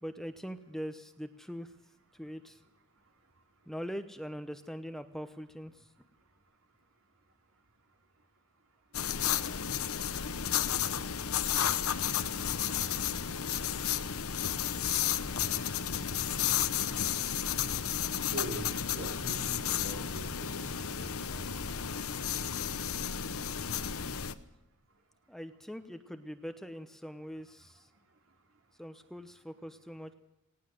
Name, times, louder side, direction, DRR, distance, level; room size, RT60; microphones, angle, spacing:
voice 1, 0.0-1.7 2.1-2.6 3.7-5.9 25.3-27.9 28.8-30.1, equal, ahead, 9 dB, 0.8 m, -42 dB
sound 1, 8.9-24.3, left 9 dB, 80° left, 1.0 m, -32 dB
voice 2, 18.2-21.7, right 1 dB, 70° right, 4 dB, 3.2 m, -43 dB
19.5 x 18.0 x 7.8 m, 0.92 s
head